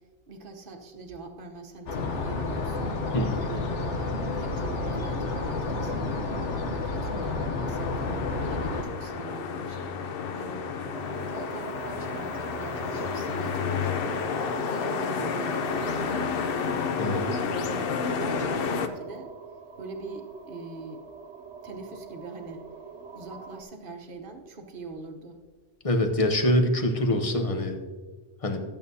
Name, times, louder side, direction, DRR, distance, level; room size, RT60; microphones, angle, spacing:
voice 1, 0.3-3.0 3.4-3.6 4.2-6.4 6.7-9.9 10.4-10.6 11.2-14.4 14.7-16.9 17.6-17.8 18.2-19.3 19.8-21.1 21.6-22.6 23.1-25.4, right 3 dB, 50° right, 5 dB, 1.1 m, -42 dB
sound 1, 1.9-8.8, left 3 dB, 80° left, 1.2 m, -30 dB
sound 2, 7.7-18.9, left 6 dB, 60° left, 0.7 m, -31 dB
sound 3, 10.9-23.6, right 5 dB, 75° right, 1.1 m, -42 dB
voice 2, 17.0-17.4 25.8-27.8 28.4-28.6, left 1 dB, 30° left, 4 dB, 0.9 m, -25 dB
12.5 x 8.6 x 2.7 m, 1.4 s
omnidirectional pair, 1.2 m